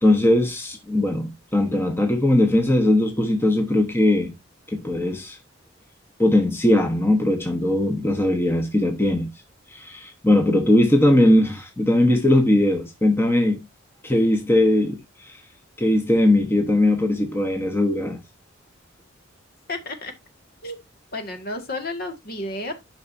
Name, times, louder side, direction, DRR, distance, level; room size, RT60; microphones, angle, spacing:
voice 1, 0.0-4.3 4.7-5.4 6.2-9.3 9.7-13.7 14.0-15.4 15.8-18.2, left 1 dB, 10° left, 1.1 m, -20 dB
voice 2, 19.7-20.1 20.6-20.8 21.1-22.7, left 2 dB, 50° left, 1.8 m, -31 dB
10.5 x 5.8 x 2.6 m
head